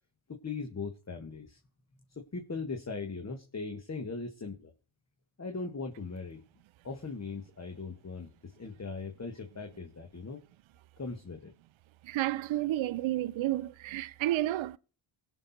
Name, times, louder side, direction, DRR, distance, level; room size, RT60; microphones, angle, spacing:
voice 1, 0.3-1.6 2.2-4.7 5.4-6.4 6.8-10.4 11.0-11.5, left 4 dB, 30° left, 1.9 m, -39 dB
voice 2, 12.0-14.8, right 15 dB, 70° right, 0.6 m, -31 dB
17.5 x 6.3 x 4.3 m
cardioid pair, 70°, 48 cm